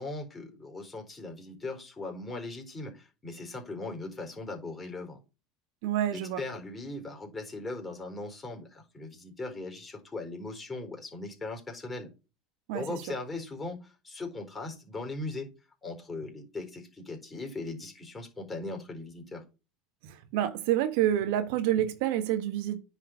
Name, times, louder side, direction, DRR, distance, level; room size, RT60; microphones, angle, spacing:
voice 1, 0.0-5.2 6.1-12.1 12.7-15.5 15.8-19.4, left 2 dB, 20° left, 4.1 m, -39 dB
voice 2, 5.8-6.4 12.7-13.0 20.0-22.8, right 11 dB, 65° right, 1.4 m, -28 dB
9.7 x 5.0 x 5.3 m
hypercardioid pair, 80°, 0 cm